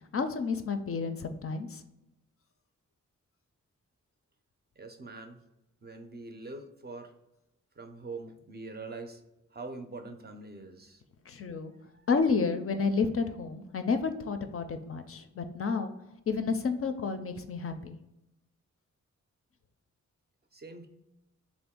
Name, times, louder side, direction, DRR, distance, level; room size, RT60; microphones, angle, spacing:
voice 1, 0.1-1.8 11.3-11.7 12.1-15.9 16.3-18.0, left 5 dB, 50° left, 8 dB, 0.4 m, -30 dB
voice 2, 4.8-5.4 5.8-7.1 7.8-11.0 11.7-12.1 20.5-20.9, right 3 dB, 35° right, 6 dB, 0.5 m, -44 dB
3.6 x 2.5 x 3.6 m, 0.89 s
wide cardioid pair, 85°, 30 cm